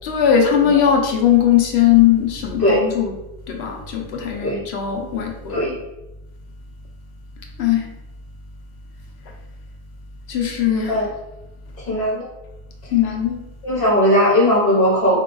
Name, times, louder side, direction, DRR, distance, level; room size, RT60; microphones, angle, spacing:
voice 1, 0.0-3.1 3.5-5.7 7.6-7.9 10.3-10.9 12.9-13.4, left 9 dB, 80° left, 2 dB, 0.9 m, -18 dB
voice 2, 11.9-12.3 13.6-15.2, equal, 55° left, -7 dB, 1.3 m, -18 dB
4.7 x 2.3 x 3.8 m, 0.95 s
omnidirectional pair, 1.1 m